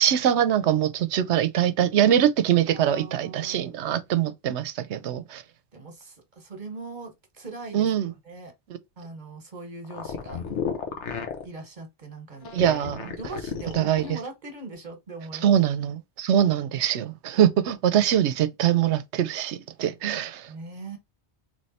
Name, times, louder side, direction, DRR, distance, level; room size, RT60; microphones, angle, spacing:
voice 1, 0.0-5.4 7.7-8.1 12.5-13.2 13.7-14.2 15.4-20.5, right 10 dB, 80° right, 0.9 m, -23 dB
voice 2, 2.7-3.7 5.7-8.5 9.0-10.4 11.4-12.7 13.2-15.5 20.5-21.0, right 3 dB, 45° right, 1.3 m, -40 dB
sound 1, 9.8-11.4 12.4-14.2, left 7 dB, 85° left, 1.2 m, -33 dB
3.3 x 3.2 x 4.1 m
omnidirectional pair, 1.2 m